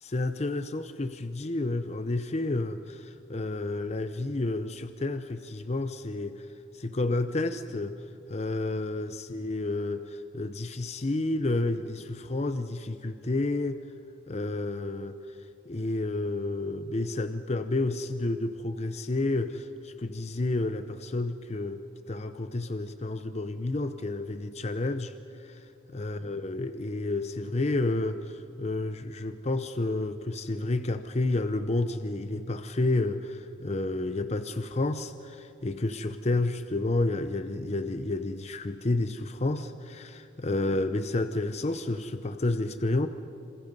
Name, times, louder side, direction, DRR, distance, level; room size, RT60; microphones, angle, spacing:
voice 1, 0.0-6.5 6.7-8.0 8.3-13.8 14.3-15.2 15.7-21.8 22.1-25.1 25.4-25.6 25.9-43.1, left 2 dB, 35° left, 10 dB, 0.7 m, -30 dB
27.5 x 27.0 x 5.4 m, 2.7 s
head